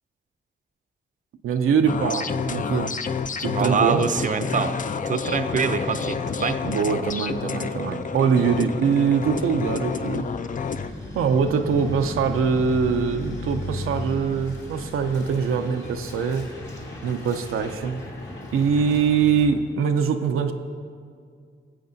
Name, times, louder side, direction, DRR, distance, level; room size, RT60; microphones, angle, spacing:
voice 1, 1.4-3.0 3.4-4.1 6.6-10.3 11.1-16.5 17.0-18.0 18.5-20.5, right 6 dB, 85° right, 6 dB, 0.5 m, -23 dB
sound 1, 1.9-10.9, left 6 dB, 40° left, 0.4 m, -29 dB
Truck, 3.2-19.4, left 2 dB, 60° left, 1.9 m, -37 dB
voice 2, 3.5-4.7 5.1-6.6, right 5 dB, 40° right, 10 dB, 0.6 m, -24 dB
18.0 x 7.7 x 2.7 m, 2.2 s
cardioid pair, 60°, 21 cm